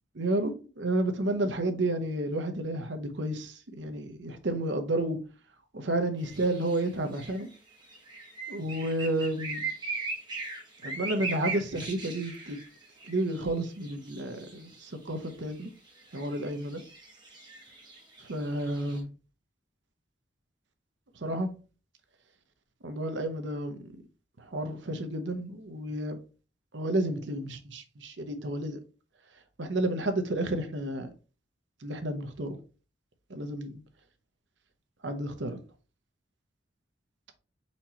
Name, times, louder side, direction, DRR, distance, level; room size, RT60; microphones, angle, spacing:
voice 1, 0.1-5.2 5.7-7.5 8.5-9.7 10.8-12.6 13.1-15.7 16.1-16.8 18.3-19.1 21.2-21.5 22.8-23.8 24.5-26.2 26.7-28.8 29.6-31.1 31.8-32.6 33.3-33.8 35.0-35.6, right 1 dB, 70° right, 0.8 m, -31 dB
sound 1, 6.2-19.0, right 3 dB, 25° right, 1.4 m, -40 dB
4.4 x 4.3 x 2.9 m
head